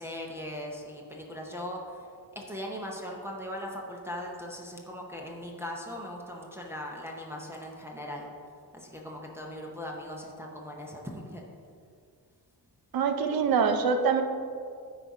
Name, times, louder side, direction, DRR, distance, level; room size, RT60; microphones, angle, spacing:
voice 1, 0.0-2.1 2.3-8.3 8.7-11.5, left 1 dB, 5° right, -2 dB, 0.8 m, -39 dB
voice 2, 12.9-14.2, right 6 dB, 65° right, 7 dB, 0.7 m, -24 dB
9.8 x 4.1 x 4.8 m, 2.2 s
wide cardioid pair, 145°, 38 cm